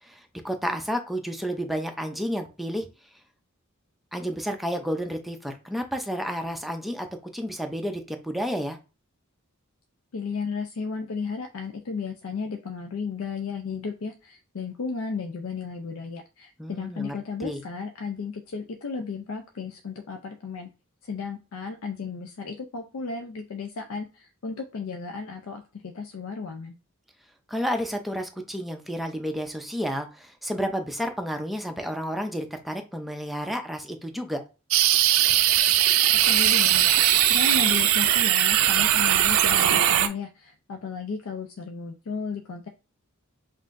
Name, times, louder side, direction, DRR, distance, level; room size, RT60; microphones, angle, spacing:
voice 1, 0.4-2.9 4.1-7.1 7.3-8.8 16.6-17.1 17.4-17.6 27.5-34.4, equal, ahead, 4 dB, 0.5 m, -31 dB
voice 2, 10.1-20.7 21.0-26.8 36.2-42.7, left 5 dB, 85° left, 5 dB, 0.5 m, -34 dB
sound 1, 34.7-40.1, right 11 dB, 80° right, 0.4 m, -20 dB
5.5 x 2.6 x 2.5 m, 0.32 s
head